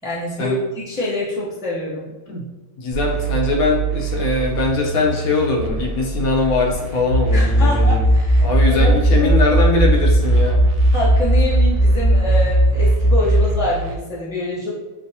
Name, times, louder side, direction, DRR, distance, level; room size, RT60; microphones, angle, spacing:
voice 1, 0.0-2.1 7.3-8.9 9.2-9.3 10.9-14.7, left 1 dB, 5° right, -7 dB, 0.4 m, -25 dB
voice 2, 2.8-8.1 8.4-10.6, left 3 dB, 70° left, -1 dB, 1.2 m, -21 dB
sound 1, 2.9-13.9, right 5 dB, 85° right, 1.1 m, -27 dB
sound 2, 7.1-13.5, right 1 dB, 50° left, 1.5 m, -16 dB
5.6 x 2.1 x 2.7 m, 1.2 s
omnidirectional pair, 1.6 m